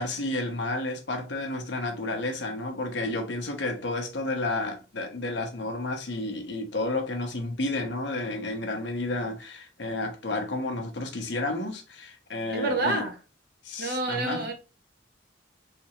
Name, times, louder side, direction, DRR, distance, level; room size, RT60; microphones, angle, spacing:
voice 1, 0.0-13.0 13.6-14.5, left 2 dB, 70° left, 0.8 m, -31 dB
voice 2, 12.5-13.2 13.8-14.5, right 2 dB, 55° right, 0.9 m, -28 dB
3.3 x 2.9 x 3.0 m
head